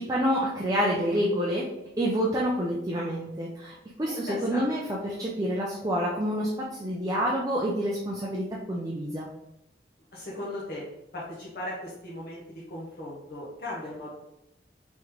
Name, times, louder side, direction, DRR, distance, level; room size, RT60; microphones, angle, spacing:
voice 1, 0.0-1.7 2.0-9.3, equal, 20° right, -4 dB, 0.4 m, -28 dB
voice 2, 4.0-4.6 10.1-10.8 11.1-12.4 12.7-14.1, left 1 dB, 55° left, -6 dB, 0.8 m, -37 dB
3.6 x 3.1 x 3.1 m, 0.86 s
head